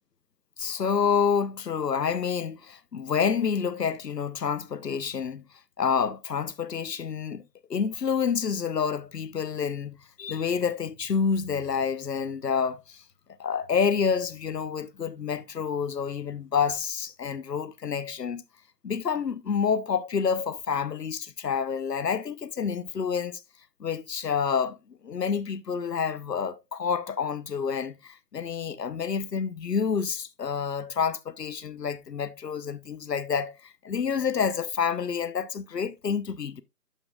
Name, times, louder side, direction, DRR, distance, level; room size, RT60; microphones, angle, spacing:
voice 1, 0.6-5.4 5.8-7.4 7.7-13.0 13.4-18.4 18.8-23.4 23.8-36.6, left 6 dB, 80° left, 1.0 m, -28 dB
12.0 x 5.5 x 2.3 m
hypercardioid pair, 175°, 48 cm